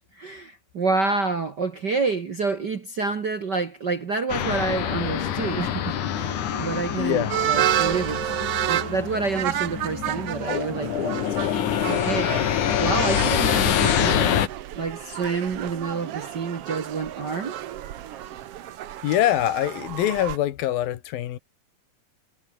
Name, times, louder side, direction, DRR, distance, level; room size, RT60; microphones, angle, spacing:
voice 1, 0.0-8.3 8.7-11.2 11.9-12.3 12.8-14.5 14.7-17.6, right 4 dB, 50° right, 1.3 m, -28 dB
sound 1, 4.3-14.5, left 10 dB, 65° left, 3.1 m, -26 dB
Wind instrument woodwind instrument, 5.0-11.7, right 4 dB, 30° right, 2.4 m, -43 dB
voice 2, 7.0-7.3 19.0-21.4, left 13 dB, 85° left, 3.2 m, -24 dB
sound 2, 7.3-20.4, right 12 dB, 65° right, 1.5 m, -30 dB
omnidirectional pair, 4.1 m